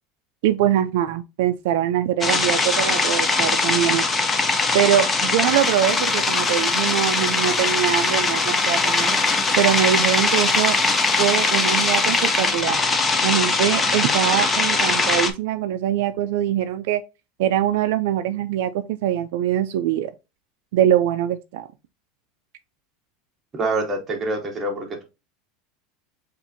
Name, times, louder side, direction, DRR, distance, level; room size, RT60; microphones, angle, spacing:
voice 1, 0.4-4.1 4.7-9.2 9.6-10.8 11.2-12.8 13.2-17.0 17.4-20.1 20.7-21.7, right 11 dB, 65° right, 0.3 m, -22 dB
sound 1, 2.2-15.3, left 3 dB, 15° left, 0.4 m, -21 dB
voice 2, 23.5-25.0, right 2 dB, 15° right, 0.9 m, -26 dB
7.1 x 2.5 x 2.6 m
supercardioid pair, 170°, 0 cm